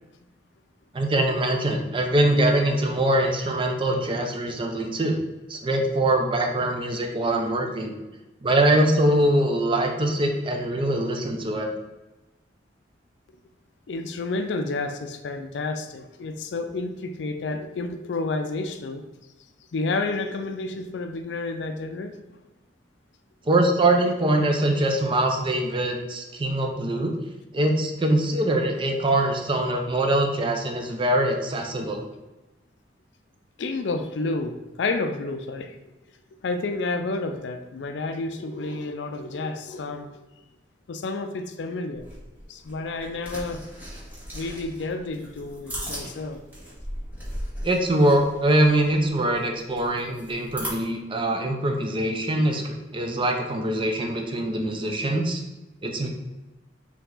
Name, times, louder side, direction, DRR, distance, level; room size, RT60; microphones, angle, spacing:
voice 1, 0.9-5.2 5.5-7.9 8.4-11.7 23.5-27.1 27.5-32.0 47.6-55.4 55.8-56.1, right 1 dB, 30° right, 3 dB, 0.5 m, -23 dB
voice 2, 13.9-19.0 19.7-22.2 33.6-35.8 36.4-40.1 40.9-42.1 42.5-43.6 44.3-46.4, left 3 dB, 75° left, 8 dB, 0.4 m, -30 dB
sound 1, 41.9-50.7, equal, 10° right, 1.5 m, -38 dB
4.6 x 2.9 x 3.8 m, 1.0 s
head